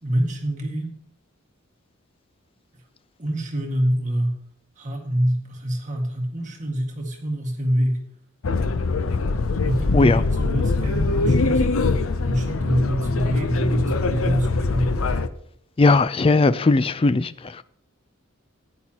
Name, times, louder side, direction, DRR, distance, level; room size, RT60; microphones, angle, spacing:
voice 1, 0.0-0.9 2.7-2.8 3.2-4.3 4.8-8.0 9.6-11.7 12.2-14.9, equal, 35° right, 1.8 m, -25 dB
sound 1, 8.4-15.3, left 3 dB, 75° left, 0.6 m, -23 dB
voice 2, 15.8-17.6, left 3 dB, 25° left, 0.3 m, -18 dB
15.0 x 9.9 x 2.9 m
head